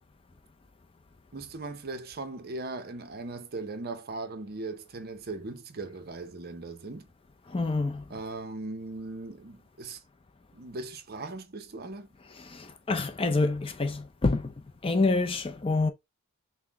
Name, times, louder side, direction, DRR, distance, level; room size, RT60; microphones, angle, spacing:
voice 1, 1.3-7.1 8.1-10.0 10.5-12.1, right 3 dB, 45° right, 0.7 m, -39 dB
voice 2, 7.5-8.0 12.5-14.5 14.8-15.9, left 3 dB, 25° left, 0.4 m, -27 dB
5.7 x 2.1 x 3.4 m
head